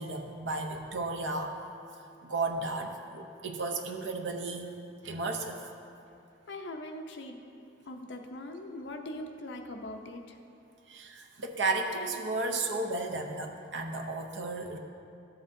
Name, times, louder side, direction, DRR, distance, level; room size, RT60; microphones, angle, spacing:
voice 1, 0.0-1.5 2.2-4.7 5.0-5.6 10.9-14.8, right 3 dB, 65° right, 3 dB, 0.7 m, -33 dB
voice 2, 6.5-7.4 7.9-10.4, left 1 dB, 60° left, 4 dB, 0.6 m, -41 dB
12.0 x 7.6 x 2.7 m, 2.7 s
head